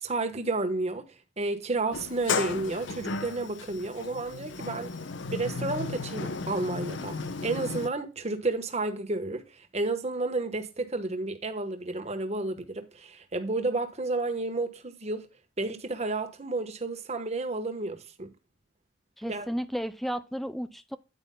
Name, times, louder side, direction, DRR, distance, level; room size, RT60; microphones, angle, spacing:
voice 1, 0.0-1.1 1.4-4.9 5.3-15.3 15.6-18.3 19.2-19.5, right 2 dB, 35° right, 1.2 m, -31 dB
Sliding door, 1.9-7.9, left 4 dB, 70° left, 0.7 m, -34 dB
voice 2, 19.2-21.0, equal, ahead, 0.4 m, -33 dB
9.6 x 8.9 x 2.2 m
head